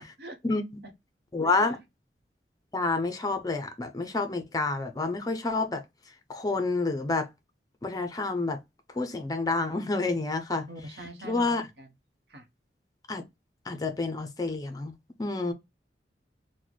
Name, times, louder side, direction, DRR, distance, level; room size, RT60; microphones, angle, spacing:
voice 1, 0.2-0.5 1.5-1.7 10.7-11.9 12.3-12.5, right 1 dB, 65° right, 0.9 m, -44 dB
voice 2, 1.3-1.8 2.7-5.8 6.3-7.3 7.8-8.6 8.9-10.6 11.2-11.6 13.1-13.2 13.7-14.9 15.2-15.5, left 3 dB, 20° left, 0.5 m, -28 dB
3.1 x 2.1 x 3.9 m
head